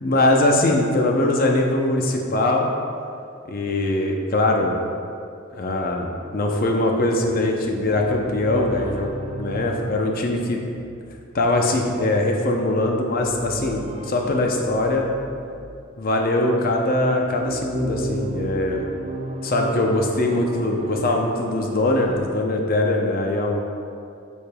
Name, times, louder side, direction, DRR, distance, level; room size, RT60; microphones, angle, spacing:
voice 1, 0.0-2.7 3.5-4.8 5.5-9.1 9.4-10.6 11.3-15.1 16.0-18.9 19.4-23.6, left 2 dB, 45° left, 1 dB, 0.6 m, -21 dB
sound 1, 7.5-16.0 16.6-22.3, right 1 dB, 30° right, 0.4 m, -35 dB
8.6 x 5.2 x 2.3 m, 2.5 s
head